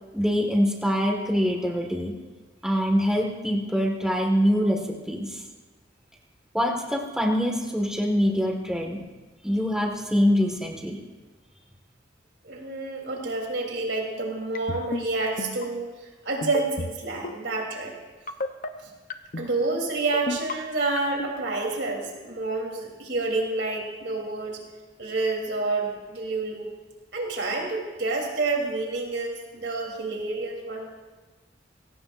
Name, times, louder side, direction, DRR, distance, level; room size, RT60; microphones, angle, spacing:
voice 1, 0.1-2.1 2.6-5.4 6.5-9.0 9.4-11.0, equal, 5° right, 0 dB, 1.8 m, -24 dB
voice 2, 12.4-18.0 18.8-18.9 19.4-24.6 25.0-26.7 27.1-30.9, right 3 dB, 80° right, -1 dB, 3.6 m, -29 dB
sound 1, 14.5-15.0 15.4-15.6 16.4-16.9 17.2-17.5 18.3-18.7 19.1-19.5 20.1-20.5 21.0-21.3, left 2 dB, 50° left, 0.9 m, -30 dB
22.5 x 17.0 x 2.6 m, 1.3 s
head